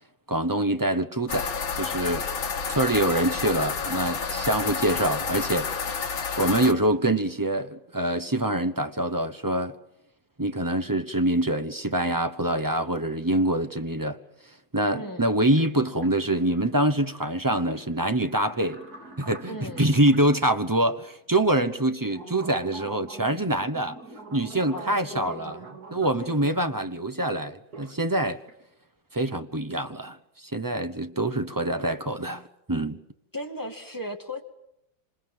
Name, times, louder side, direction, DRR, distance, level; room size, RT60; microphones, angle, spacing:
voice 1, 0.3-2.3 2.7-9.8 10.4-14.2 14.7-18.8 19.2-24.0 24.3-25.6 25.9-28.4 29.1-33.0, right 1 dB, 20° right, 0.5 m, -25 dB
sound 1, 1.3-6.7, left 5 dB, 85° left, 2.5 m, -30 dB
sound 2, 12.8-12.9 13.1-13.9 15.6-15.7 16.0-20.5 21.0-21.1 21.8-26.6 27.5-28.0 28.3-28.6, right 3 dB, 50° right, 4.0 m, -45 dB
voice 2, 14.9-15.3 19.5-19.9 24.7-25.7 26.2-27.0 33.3-34.4, left 1 dB, 10° left, 2.4 m, -37 dB
27.0 x 26.0 x 7.8 m
omnidirectional pair, 2.1 m